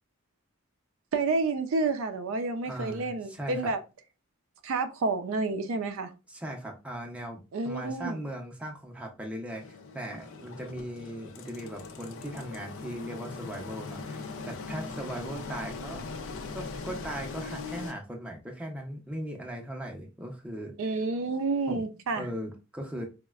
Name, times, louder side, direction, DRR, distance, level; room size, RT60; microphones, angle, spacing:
voice 1, 1.1-3.8 4.6-6.1 7.5-8.2 20.8-22.3, right 3 dB, 70° right, 0.4 m, -29 dB
voice 2, 2.6-3.7 6.3-16.0 16.5-20.8 21.7-21.8 22.2-23.1, equal, 5° right, 0.5 m, -38 dB
Engine, 9.5-17.9, left 4 dB, 60° left, 0.4 m, -40 dB
4.0 x 2.1 x 2.3 m
head